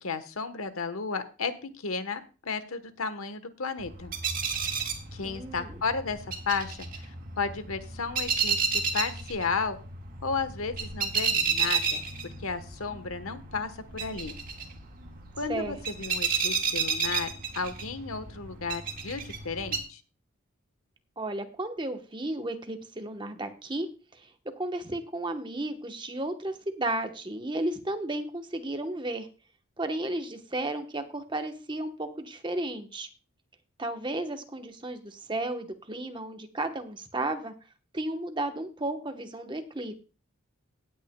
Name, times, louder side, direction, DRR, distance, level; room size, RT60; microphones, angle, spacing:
voice 1, 0.0-4.1 5.1-9.8 10.2-12.0 12.4-14.4 15.4-20.0, left 4 dB, 85° left, 10 dB, 1.1 m, -33 dB
sound 1, 3.8-19.8, right 5 dB, 40° right, 1.8 m, -32 dB
voice 2, 5.2-5.8 15.5-15.8 21.2-23.9 24.1-24.3 24.6-29.3 29.8-33.1 33.8-37.5 37.9-39.9, right 2 dB, 20° right, 7 dB, 1.0 m, -33 dB
17.5 x 9.2 x 2.2 m, 0.33 s
head